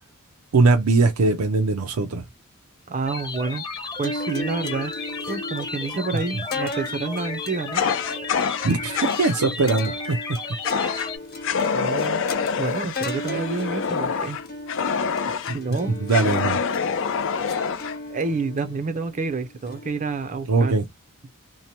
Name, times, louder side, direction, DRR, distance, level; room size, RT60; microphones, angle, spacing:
voice 1, 0.5-2.2 8.6-10.4 16.0-16.6 20.5-20.8, right 3 dB, 90° right, 0.5 m, -21 dB
voice 2, 2.9-3.6 4.0-4.9 5.3-7.8 11.7-12.3 12.6-14.4 15.5-16.0 18.1-20.8, right 4 dB, 35° right, 0.4 m, -28 dB
sound 1, 3.1-11.2, left 4 dB, 20° left, 0.8 m, -34 dB
sound 2, 4.0-20.5, left 2 dB, 45° left, 0.9 m, -36 dB
Fire, 7.7-9.4 10.6-11.1 11.4-15.6 16.1-18.0, left 6 dB, 60° left, 0.5 m, -26 dB
2.7 x 2.1 x 2.9 m
head